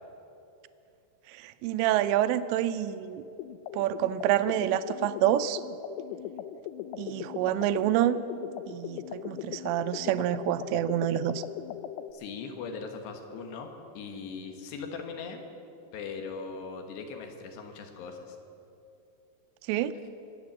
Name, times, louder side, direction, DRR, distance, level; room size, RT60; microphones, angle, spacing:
voice 1, 1.3-3.2 3.7-5.6 7.0-8.2 8.7-11.4 19.7-19.9, right 12 dB, 80° right, 13 dB, 2.7 m, -27 dB
sound 1, 3.4-12.1, left 11 dB, 90° left, 2.3 m, -39 dB
voice 2, 12.1-15.4 15.9-18.4, left 5 dB, 70° left, 5 dB, 3.2 m, -40 dB
22.0 x 8.5 x 7.2 m, 2.7 s
omnidirectional pair, 5.4 m